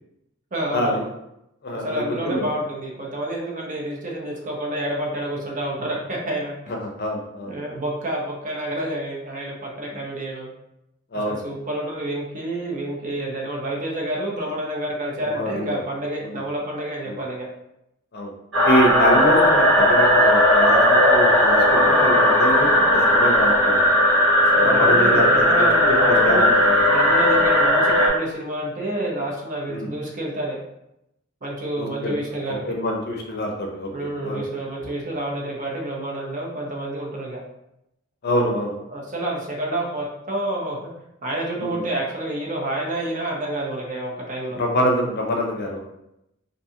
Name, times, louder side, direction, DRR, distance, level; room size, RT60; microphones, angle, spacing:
voice 1, 0.5-1.1 1.7-6.5 7.5-10.5 11.3-17.5 24.5-26.5 26.9-30.6 31.4-32.8 33.9-37.4 38.9-40.8 41.2-44.6, right 1 dB, 40° right, -2 dB, 0.6 m, -28 dB
voice 2, 1.6-2.5 6.7-7.5 11.1-11.4 15.2-15.8 16.2-16.4 17.0-17.2 18.1-18.3 18.6-23.9 24.6-26.8 29.7-29.9 31.8-32.1 32.5-34.4 38.2-38.8 41.6-41.8 44.5-45.8, equal, 50° left, 0 dB, 0.5 m, -25 dB
sound 1, 18.5-28.1, left 1 dB, 75° right, 1.1 m, -16 dB
2.5 x 2.4 x 2.7 m, 0.84 s
head